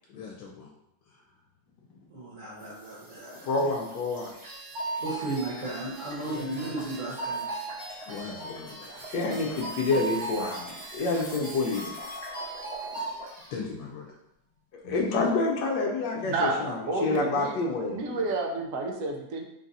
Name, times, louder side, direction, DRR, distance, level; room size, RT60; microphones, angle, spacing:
voice 1, 0.1-0.7 1.1-1.3 8.0-9.1 13.5-14.1 14.8-15.3, left 5 dB, 90° left, -2 dB, 1.4 m, -40 dB
voice 2, 2.1-3.7 5.0-7.4 9.9-10.0 10.4-10.5, right 2 dB, 35° right, -7 dB, 0.9 m, -35 dB
sound 1, 2.6-13.4, right 1 dB, 5° right, 0.7 m, -46 dB
voice 3, 3.5-4.3 6.3-6.7 9.1-11.9 14.8-18.2, left 3 dB, 70° left, 0 dB, 1.3 m, -28 dB
sound 2, 4.4-13.5, right 2 dB, 60° right, 2.1 m, -38 dB
voice 4, 16.2-17.6 17.9-19.4, right 2 dB, 75° right, 2 dB, 0.7 m, -30 dB
3.9 x 2.5 x 4.0 m, 0.82 s
omnidirectional pair, 2.1 m